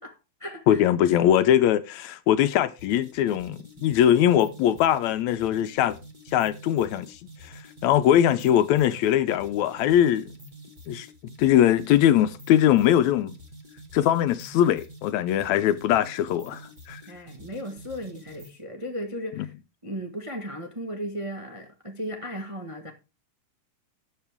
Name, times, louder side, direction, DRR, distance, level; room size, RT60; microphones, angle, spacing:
voice 1, 0.0-0.8 17.1-19.5 19.8-22.9, equal, 60° right, 0.3 m, -36 dB
voice 2, 0.7-6.0 6.3-7.2 7.4-10.3 10.9-11.1 11.4-13.3 13.9-16.6 16.9-17.0 19.4-19.5, left 11 dB, 75° left, 1.8 m, -21 dB
sound 1, 2.8-18.6, right 1 dB, 20° right, 1.6 m, -47 dB
13.0 x 8.7 x 3.5 m
omnidirectional pair, 3.6 m